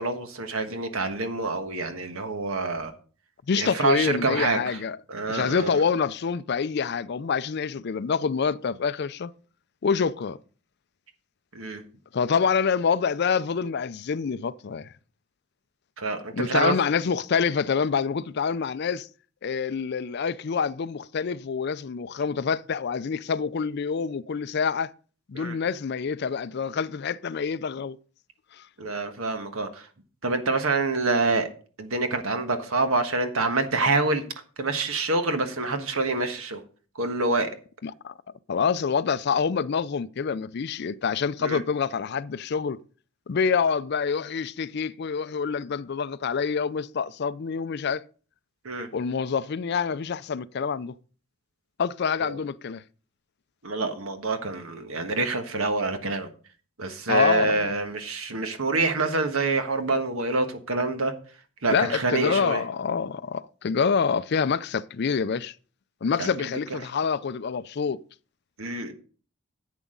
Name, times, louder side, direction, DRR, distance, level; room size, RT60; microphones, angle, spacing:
voice 1, 0.0-2.9 3.5-4.8 5.1-5.8 11.5-11.8 16.0-16.7 25.3-25.6 28.8-29.9 30.2-31.5 31.8-34.2 34.6-36.6 37.0-37.5 41.4-41.6 48.6-48.9 52.2-52.4 53.6-56.3 56.8-61.1 61.6-62.6 66.2-66.3 66.7-66.8 68.6-68.9, right 3 dB, 80° right, 1.4 m, -26 dB
voice 2, 3.5-5.0 5.3-9.3 9.8-10.4 12.1-14.9 16.3-19.1 19.4-24.9 25.3-28.0 28.6-28.7 37.8-38.1 38.5-42.8 43.3-48.0 48.9-50.9 51.8-52.8 57.1-57.7 61.7-65.5 66.0-68.0, left 6 dB, 50° left, 0.4 m, -26 dB
11.0 x 8.2 x 3.8 m
head